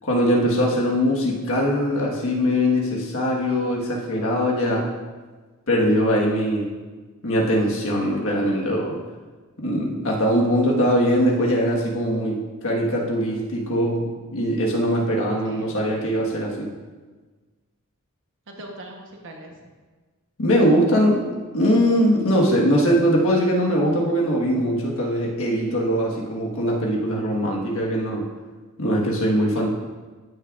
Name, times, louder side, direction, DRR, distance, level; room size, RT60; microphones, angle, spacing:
voice 1, 0.0-4.9 5.7-6.7 7.2-9.0 9.6-16.7 20.4-21.3 21.5-28.2 28.8-29.7, equal, 65° left, -2 dB, 1.5 m, -21 dB
voice 2, 15.4-16.1 18.5-19.5 29.5-29.7, right 1 dB, 60° right, 1 dB, 1.1 m, -42 dB
12.5 x 6.0 x 2.5 m, 1.3 s
head